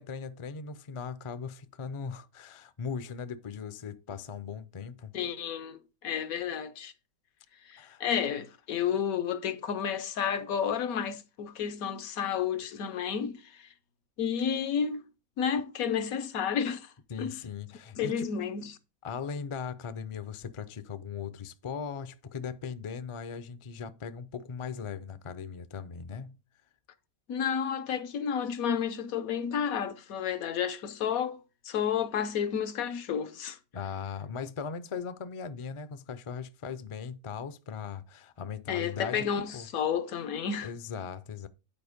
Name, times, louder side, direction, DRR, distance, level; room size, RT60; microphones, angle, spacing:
voice 1, 0.0-5.1 7.8-8.0 17.1-18.3 19.0-26.4 33.7-39.7 40.6-41.5, left 6 dB, 55° left, 0.3 m, -39 dB
voice 2, 5.1-6.9 7.7-13.7 14.2-15.0 15.4-16.9 17.2-17.4 18.0-18.7 27.3-31.4 31.6-33.6 38.7-40.7, left 7 dB, 80° left, 1.2 m, -31 dB
9.1 x 4.4 x 5.0 m
omnidirectional pair, 1.5 m